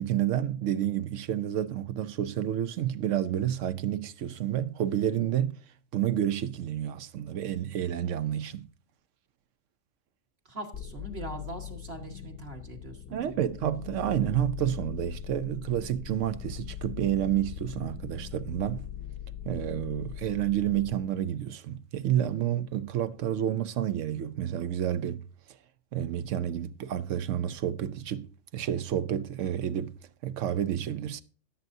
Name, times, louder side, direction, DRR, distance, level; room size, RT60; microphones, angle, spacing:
voice 1, 0.0-5.6 5.9-8.7 13.1-18.9 19.4-25.2 25.9-29.9 30.2-31.2, right 11 dB, 75° right, 1.0 m, -30 dB
voice 2, 10.5-13.5, right 2 dB, 50° right, 1.8 m, -42 dB
sound 1, 10.7-21.0, left 10 dB, 60° left, 0.9 m, -41 dB
17.0 x 7.8 x 2.7 m
omnidirectional pair, 1.3 m